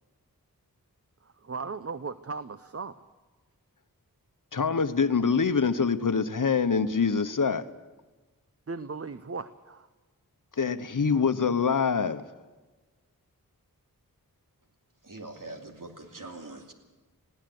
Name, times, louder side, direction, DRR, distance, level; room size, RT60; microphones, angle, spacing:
voice 1, 1.2-3.1 8.7-9.9, right 4 dB, 40° right, 13 dB, 0.8 m, -37 dB
voice 2, 4.5-7.7 10.5-12.3, left 5 dB, 60° left, 11 dB, 1.0 m, -25 dB
voice 3, 15.0-16.7, right 2 dB, 60° right, 3 dB, 2.9 m, -43 dB
21.0 x 16.0 x 7.8 m, 1.2 s
wide cardioid pair, 60°, 36 cm